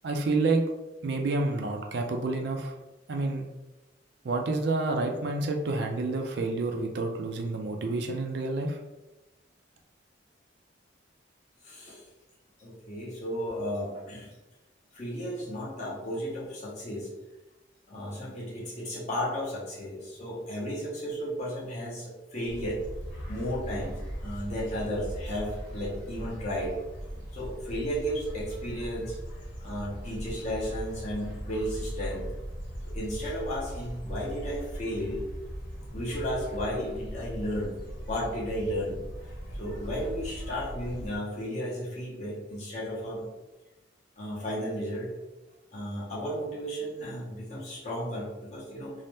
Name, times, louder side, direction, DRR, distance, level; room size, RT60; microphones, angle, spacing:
voice 1, 0.0-0.6 1.0-2.7 3.1-3.5 4.2-8.8, right 3 dB, 60° right, 3 dB, 0.3 m, -29 dB
voice 2, 11.6-12.0 12.6-14.3 14.9-17.1 17.9-22.8 23.3-26.8 27.2-29.1 29.6-32.3 32.9-35.2 35.9-37.8 38.1-39.0 39.6-43.3 44.2-45.1 45.7-48.9, equal, 35° left, -5 dB, 0.9 m, -34 dB
sound 1, 22.5-41.2, equal, 70° left, 1.3 m, -39 dB
2.7 x 2.0 x 3.3 m, 1.1 s
head